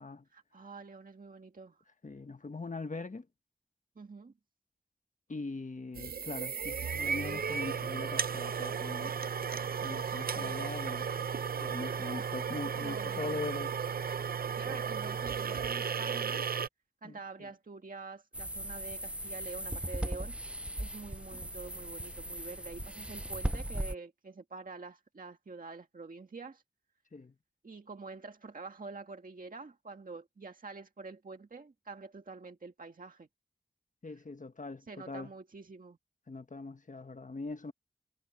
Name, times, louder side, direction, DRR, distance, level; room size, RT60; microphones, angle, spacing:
voice 1, 0.3-1.8 4.0-4.3 10.3-10.6 12.8-13.4 14.6-16.4 17.0-20.4 20.8-26.6 27.6-33.3 34.9-36.0, right 4 dB, 70° right, 1.8 m, -46 dB
voice 2, 2.0-3.2 5.3-9.2 9.8-11.1 11.6-13.7 14.7-14.8 17.0-17.5 27.1-27.3 34.0-35.3 36.3-37.7, left 3 dB, 60° left, 1.6 m, -41 dB
sound 1, 5.9-16.7, right 6 dB, 90° right, 0.6 m, -35 dB
sound 2, 18.3-23.9, right 1 dB, 10° right, 0.5 m, -38 dB
cardioid pair, 45°, 15 cm